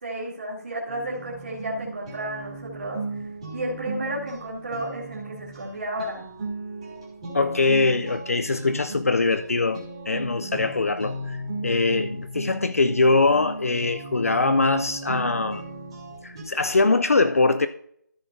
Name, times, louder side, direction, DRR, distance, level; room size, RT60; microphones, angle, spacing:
voice 1, 0.0-3.0 3.5-6.2, right 1 dB, 35° right, 2.3 m, -32 dB
sound 1, 0.9-16.4, right 2 dB, 20° right, 2.0 m, -36 dB
voice 2, 7.3-11.4 11.6-15.6 16.2-17.7, left 3 dB, 50° left, 0.4 m, -22 dB
14.0 x 6.1 x 2.6 m
figure-of-eight pair, 175°, 10 cm